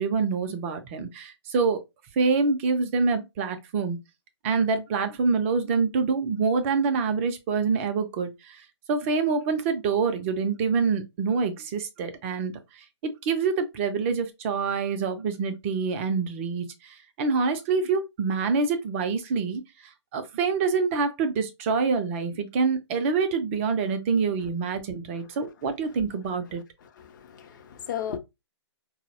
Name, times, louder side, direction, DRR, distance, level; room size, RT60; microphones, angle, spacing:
voice 1, 0.0-1.8 2.2-4.0 4.4-8.6 8.9-19.6 20.1-26.6, right 5 dB, 30° right, 0.4 m, -26 dB
voice 2, 26.8-28.2, left 9 dB, 45° left, 0.5 m, -35 dB
3.9 x 2.0 x 2.6 m
figure-of-eight pair, 125°, 15 cm